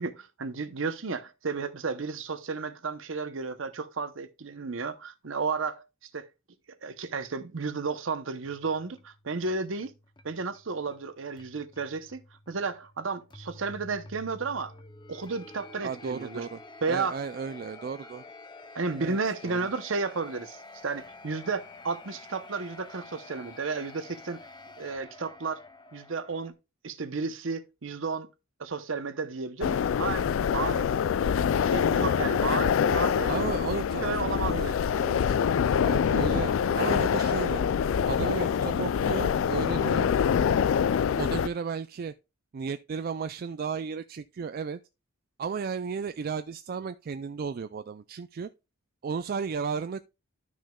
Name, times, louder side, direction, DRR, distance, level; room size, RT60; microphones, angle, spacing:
voice 1, 0.0-5.8 6.1-6.3 6.8-9.9 10.2-12.2 12.5-14.8 15.1-16.5 16.8-17.2 18.7-24.4 24.8-25.6 25.9-26.5 26.8-28.3 28.6-30.3 30.5-30.9 31.6-33.3 34.0-34.8, right 4 dB, 65° right, 0.8 m, -33 dB
sound 1, 8.4-26.5, left 3 dB, 20° left, 0.7 m, -49 dB
voice 2, 15.8-16.6 16.9-18.2 19.0-19.2 19.4-19.7 33.3-35.4 35.8-37.6 38.1-40.1 41.2-42.1 42.5-44.8 45.4-48.5 49.0-50.0, right 6 dB, 45° right, 0.3 m, -34 dB
sound 2, 29.6-41.5, left 7 dB, 70° left, 0.3 m, -25 dB
12.0 x 6.2 x 2.3 m
head